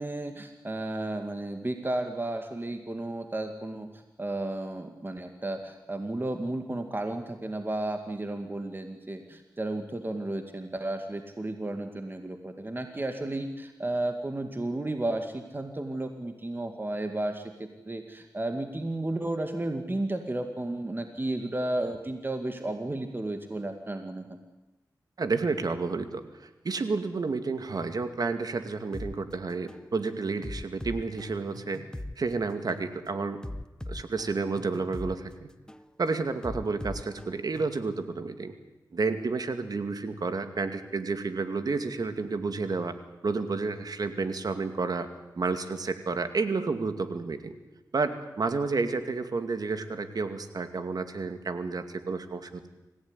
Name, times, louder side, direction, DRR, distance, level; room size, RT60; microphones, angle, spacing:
voice 1, 0.0-24.4, right 1 dB, 30° right, 6 dB, 2.2 m, -33 dB
voice 2, 25.2-31.8 32.2-33.4 33.9-35.3 36.0-38.5 38.9-43.0 43.2-45.1 45.4-47.5 47.9-52.7, right 4 dB, 65° right, 9 dB, 2.4 m, -30 dB
sound 1, 28.9-29.1 29.7-29.9 30.4-32.2 32.7-32.9 33.4-35.2 35.7-35.9 36.4-37.9, left 1 dB, 10° left, 1.1 m, -39 dB
26.0 x 16.0 x 9.9 m, 1.1 s
cardioid pair, 50°, 7 cm